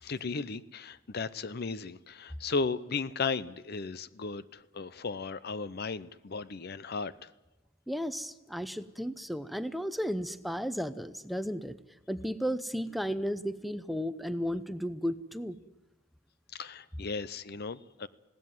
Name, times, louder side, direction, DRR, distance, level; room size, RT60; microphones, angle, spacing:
voice 1, 0.0-7.3 16.5-18.1, left 4 dB, 55° left, 16 dB, 0.7 m, -35 dB
voice 2, 7.9-11.8 12.1-15.6, equal, ahead, 11 dB, 0.7 m, -34 dB
20.5 x 17.0 x 9.5 m, 1.0 s
head